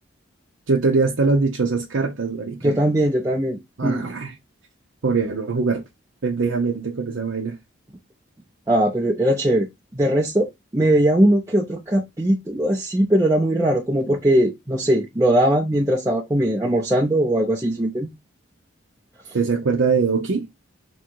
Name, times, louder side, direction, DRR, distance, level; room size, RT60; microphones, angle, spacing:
voice 1, 0.7-2.8 3.8-4.4 5.0-5.8 6.2-7.6 19.3-20.5, right 4 dB, 75° right, 0.7 m, -22 dB
voice 2, 2.6-4.0 8.7-10.5 10.7-18.1, right 1 dB, 15° right, 0.6 m, -20 dB
3.7 x 3.1 x 4.5 m
head